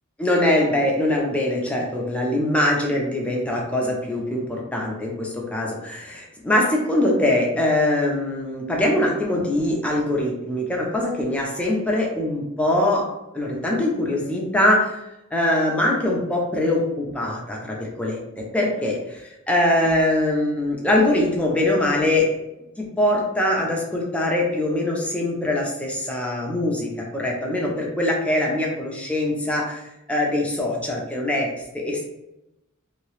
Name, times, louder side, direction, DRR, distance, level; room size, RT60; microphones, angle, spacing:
voice 1, 0.2-13.1 13.3-15.0 15.3-22.4 22.8-29.8 30.1-31.5 31.7-32.1, left 1 dB, 5° left, -2 dB, 0.6 m, -22 dB
2.9 x 2.8 x 3.2 m, 0.91 s
head